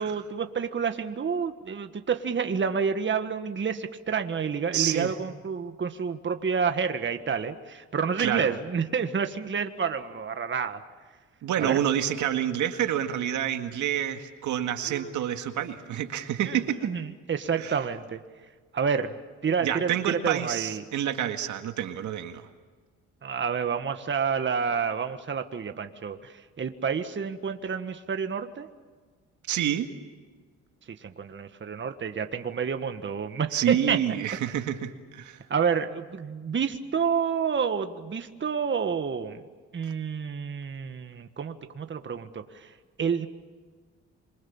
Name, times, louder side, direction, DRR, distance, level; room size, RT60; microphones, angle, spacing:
voice 1, 0.0-10.8 11.6-11.8 14.8-15.1 16.5-18.2 18.7-19.1 19.4-20.8 23.2-28.7 31.0-34.0 35.5-39.4 39.7-42.4 43.0-43.3, right 6 dB, 40° right, 7 dB, 1.7 m, -29 dB
voice 2, 4.7-5.1 8.2-8.6 11.4-16.9 17.6-17.7 19.6-22.4 29.5-29.9 33.5-35.4, right 10 dB, 75° right, 6 dB, 2.0 m, -28 dB
27.0 x 24.5 x 7.3 m, 1.5 s
cardioid pair, 90°, 30 cm